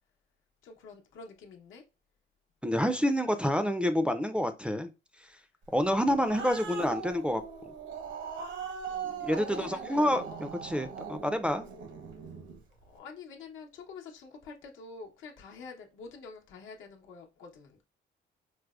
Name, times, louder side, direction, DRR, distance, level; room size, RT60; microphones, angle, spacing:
voice 1, 0.6-1.8 5.9-6.4 8.9-10.9 12.8-17.8, left 4 dB, 80° left, 0.8 m, -48 dB
voice 2, 2.6-4.9 5.7-7.4 9.2-11.7, equal, 5° right, 0.4 m, -28 dB
Growling, 5.8-12.6, right 6 dB, 70° right, 0.8 m, -40 dB
4.6 x 2.1 x 2.3 m
cardioid pair, 90°, 20 cm